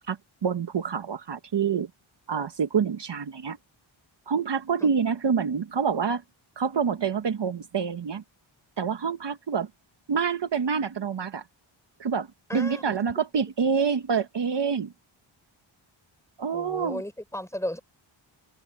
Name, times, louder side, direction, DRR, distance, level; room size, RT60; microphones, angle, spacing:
voice 1, 0.1-1.9 2.3-3.6 4.3-6.2 6.6-8.2 8.8-9.7 10.1-11.4 12.0-12.3 12.5-14.9 16.4-17.0, right 6 dB, 60° right, 1.2 m, -27 dB
voice 2, 12.5-13.0 16.5-17.8, left 1 dB, 5° left, 5.7 m, -35 dB
wide cardioid pair, 105°, 48 cm